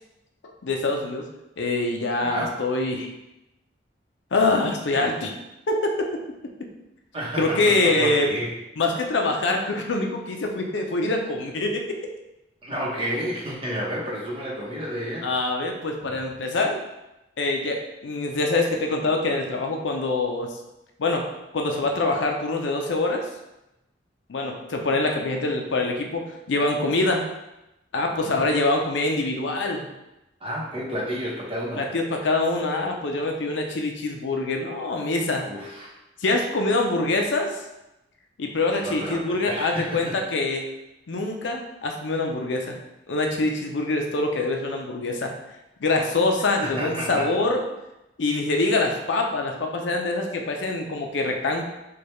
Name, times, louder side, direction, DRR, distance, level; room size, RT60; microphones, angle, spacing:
voice 1, 0.6-1.3 1.6-3.1 4.3-5.3 5.7-5.9 7.4-8.4 8.8-11.8 15.2-16.8 17.4-20.6 21.0-21.3 21.5-23.3 24.3-27.3 27.9-29.9 31.8-35.4 36.2-37.5 38.4-40.7 41.1-42.8 43.1-45.3 45.8-47.6 48.2-51.6, left 2 dB, 75° left, 2 dB, 0.5 m, -24 dB
voice 2, 7.1-8.5 12.6-15.3 28.2-28.5 30.4-31.8 35.4-35.9 38.8-40.1 46.6-47.3, equal, 30° right, -4 dB, 0.9 m, -31 dB
4.5 x 2.3 x 3.2 m, 0.93 s
head